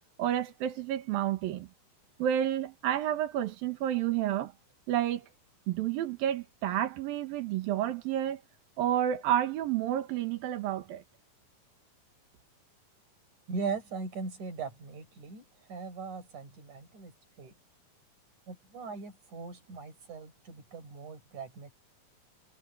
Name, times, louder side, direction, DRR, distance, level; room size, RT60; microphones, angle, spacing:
voice 1, 0.2-1.7 2.2-4.5 4.9-5.3 5.7-8.4 8.8-11.0, right 11 dB, 80° right, 3.3 m, -30 dB
voice 2, 13.5-15.4 15.7-17.5 18.5-21.7, right 5 dB, 55° right, 6.7 m, -39 dB
omnidirectional pair, 4.1 m